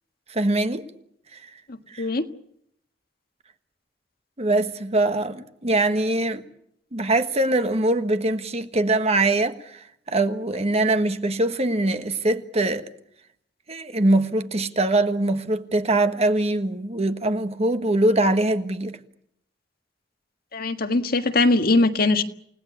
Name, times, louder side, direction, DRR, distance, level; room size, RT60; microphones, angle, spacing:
voice 1, 0.3-0.9 1.3-1.4 1.9-2.1 4.4-6.4 6.9-9.8 10.1-12.8 13.7-18.9, right 2 dB, 35° right, 1.5 m, -22 dB
voice 2, 20.5-22.2, left 2 dB, 55° left, 1.6 m, -20 dB
29.0 x 18.0 x 8.5 m
head